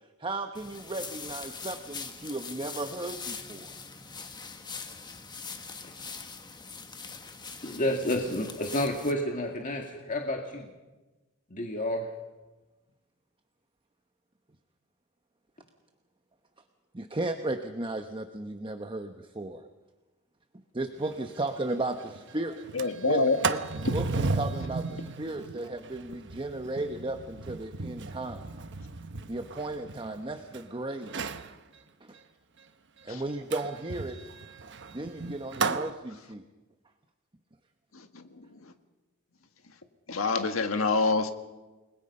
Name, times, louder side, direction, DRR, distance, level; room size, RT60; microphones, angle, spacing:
voice 1, 0.2-3.7 16.9-19.6 20.7-22.7 23.1-28.4 29.3-31.3 32.0-32.2 33.0-34.2 34.9-36.4, right 2 dB, 25° right, 6 dB, 1.0 m, -35 dB
sound 1, 0.5-9.1, left 5 dB, 20° left, 1.4 m, -42 dB
voice 2, 7.6-10.7 11.5-12.1, left 1 dB, 40° left, 2 dB, 2.1 m, -30 dB
Sliding door, 21.0-21.1 21.5-21.6 21.9-22.2 22.6-30.6 31.0-31.5 33.5-35.9, right 3 dB, 60° right, 1.1 m, -34 dB
voice 3, 22.7-23.4 23.9-24.0 33.1-33.2 38.2-38.4 40.1-41.3, left 3 dB, 75° left, 7 dB, 1.8 m, -26 dB
29.0 x 21.5 x 5.5 m, 1.1 s
head